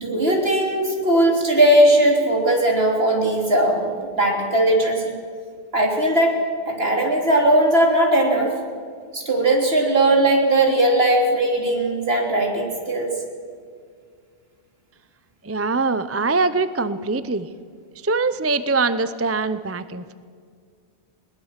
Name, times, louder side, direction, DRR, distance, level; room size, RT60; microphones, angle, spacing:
voice 1, 0.0-5.1 5.7-6.4 6.7-8.5 9.1-13.2, right 1 dB, 60° right, 1 dB, 3.6 m, -18 dB
voice 2, 15.4-17.5 18.0-20.1, right 3 dB, 15° right, 13 dB, 0.5 m, -23 dB
21.0 x 19.5 x 7.4 m, 2.1 s
omnidirectional pair, 1.1 m